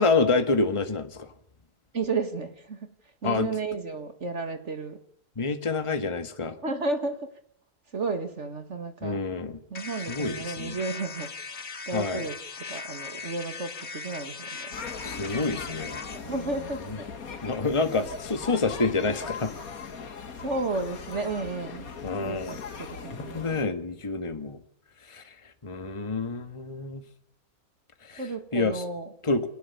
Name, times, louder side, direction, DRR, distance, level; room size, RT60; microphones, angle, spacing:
voice 1, 0.0-1.3 3.2-3.5 5.4-6.6 9.0-9.6 10.1-10.8 11.9-12.2 15.0-16.3 17.4-19.5 22.0-22.5 23.1-24.6 25.1-25.3 25.6-27.0 28.0-28.2 28.5-28.8 29.2-29.5, left 3 dB, 20° left, 8 dB, 1.5 m, -28 dB
voice 2, 1.9-2.9 3.2-5.0 6.6-7.3 7.9-9.2 9.7-14.7 16.1-17.1 20.4-21.9 22.2-23.4 28.2-29.1, right 3 dB, 50° right, 7 dB, 2.2 m, -33 dB
sound 1, 9.7-16.2, left 4 dB, 45° left, 1.8 m, -39 dB
sound 2, 14.7-23.6, left 5 dB, 70° left, 2.1 m, -39 dB
28.5 x 19.5 x 6.9 m, 0.69 s
omnidirectional pair, 1.6 m